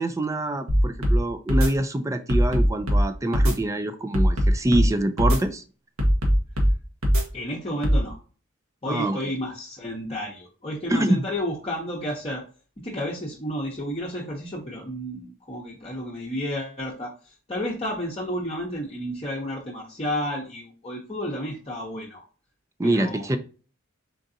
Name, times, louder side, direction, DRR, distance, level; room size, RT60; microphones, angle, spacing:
voice 1, 0.0-5.6 8.9-9.2 10.9-11.2 22.8-23.4, right 1 dB, 15° right, 9 dB, 0.3 m, -25 dB
sound 1, 0.7-1.2 1.5-1.7 2.3-3.0 3.3-3.5 4.1-4.9 5.2-5.4 6.0-6.7 7.0-7.2 7.8-8.0, equal, 85° right, 1.3 m, -19 dB
voice 2, 7.3-8.2 8.8-12.4 12.8-22.2 22.8-23.4, equal, 30° left, -3 dB, 0.8 m, -31 dB
4.6 x 3.8 x 2.6 m, 0.37 s
head